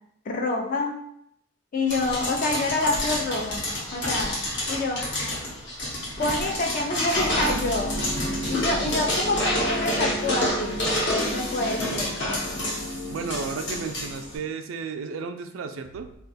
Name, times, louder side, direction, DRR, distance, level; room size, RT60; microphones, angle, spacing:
voice 1, 0.3-1.0 1.7-3.7 3.9-4.4 4.7-5.0 6.2-7.9 8.5-10.8 11.3-12.1, left 2 dB, 40° left, 1 dB, 0.3 m, -27 dB
sound 1, 1.9-14.3, left 1 dB, 60° left, 0.9 m, -29 dB
sound 2, 7.1-14.5, equal, 85° left, 0.6 m, -34 dB
voice 2, 13.1-16.2, right 5 dB, 90° right, 8 dB, 0.3 m, -33 dB
2.3 x 2.3 x 3.9 m, 0.76 s
head